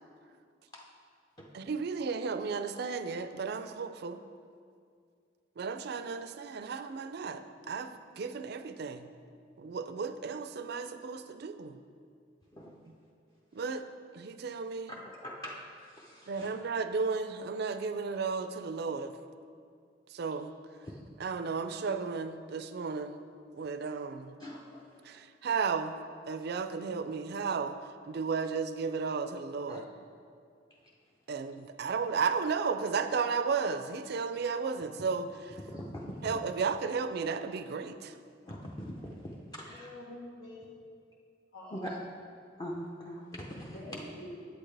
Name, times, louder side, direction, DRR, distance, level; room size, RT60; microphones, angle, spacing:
voice 1, 1.5-4.2 5.6-9.1 9.6-11.8 13.5-13.9 14.1-14.9 16.3-19.1 20.1-20.5 21.2-23.2 23.5-24.3 25.0-26.0 26.3-27.8 28.1-29.9 31.3-35.3 36.2-38.1, right 5 dB, 60° right, 10 dB, 0.4 m, -34 dB
voice 2, 14.9-16.5 20.8-21.0 23.6-23.7 24.4-25.2 29.7-29.8 35.7-36.4 38.5-39.9 41.7-42.0 42.6-44.0, equal, 20° left, -3 dB, 0.6 m, -42 dB
voice 3, 39.6-40.6 41.5-41.9 43.7-44.4, left 1 dB, 75° left, -8 dB, 1.5 m, -46 dB
8.6 x 8.1 x 3.3 m, 2.3 s
head